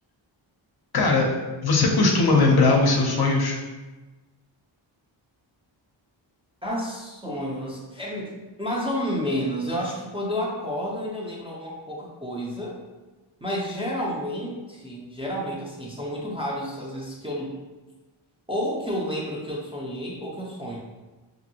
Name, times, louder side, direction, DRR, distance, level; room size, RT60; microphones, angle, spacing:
voice 1, 0.9-1.4 1.6-3.5, left 3 dB, 55° left, -1 dB, 0.6 m, -19 dB
voice 2, 6.6-12.8 13.4-17.6 18.5-20.8, equal, 10° right, -5 dB, 0.4 m, -30 dB
2.7 x 2.5 x 2.7 m, 1.2 s
wide cardioid pair, 100°, 47 cm